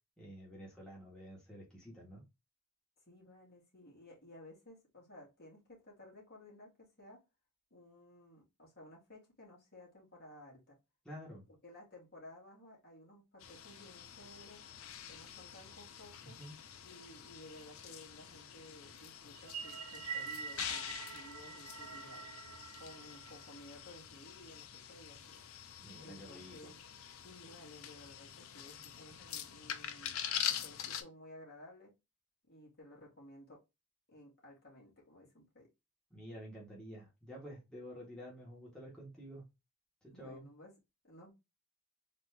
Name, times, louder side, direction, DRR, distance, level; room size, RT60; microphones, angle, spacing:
voice 1, 0.2-2.2 11.0-11.4 16.4-16.5 25.8-26.7 36.1-39.4 40.0-40.5, equal, 5° left, 1.8 m, -50 dB
voice 2, 3.1-7.2 7.7-10.8 11.5-14.6 15.1-16.4 16.8-22.2 22.8-25.4 26.0-26.9 27.2-30.2 30.5-31.9 32.5-33.6 34.1-35.7 40.1-40.7 41.0-41.3, left 1 dB, 45° left, 2.3 m, -56 dB
sound 1, 13.4-31.0, left 9 dB, 65° left, 0.6 m, -45 dB
sound 2, 19.3-23.9, right 6 dB, 75° right, 0.8 m, -46 dB
4.1 x 3.0 x 3.5 m
head